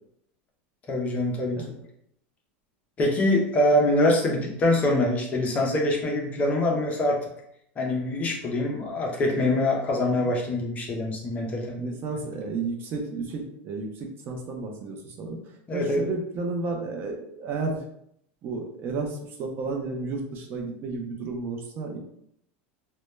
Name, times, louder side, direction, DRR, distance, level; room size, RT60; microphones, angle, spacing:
voice 1, 0.9-1.6 3.0-7.3 7.8-11.9 15.7-16.0, left 1 dB, 25° left, 0 dB, 0.5 m, -24 dB
voice 2, 11.8-15.4 15.7-17.8 18.4-22.0, right 3 dB, 35° right, 2 dB, 0.5 m, -32 dB
2.1 x 2.1 x 3.0 m, 0.72 s
supercardioid pair, 145°, 6 cm